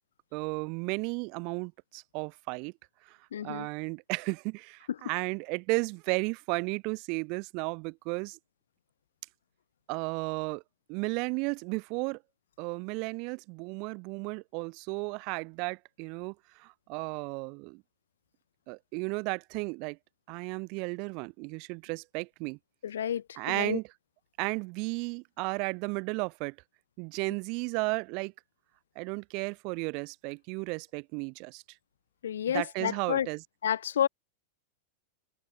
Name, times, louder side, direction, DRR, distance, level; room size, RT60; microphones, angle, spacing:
voice 1, 0.3-2.7 3.4-8.4 9.9-10.6 10.9-12.2 12.6-16.3 16.6-17.8 18.7-20.0 20.3-22.6 23.4-23.8 24.4-26.5 27.0-28.3 29.0-31.6 32.5-33.4, right 31 dB, 45° right, 0.8 m, -34 dB
voice 2, 3.3-3.7 22.8-23.8 32.2-33.3 33.6-34.1, left 9 dB, 65° left, 0.3 m, -30 dB
figure-of-eight pair, 90°, 0 cm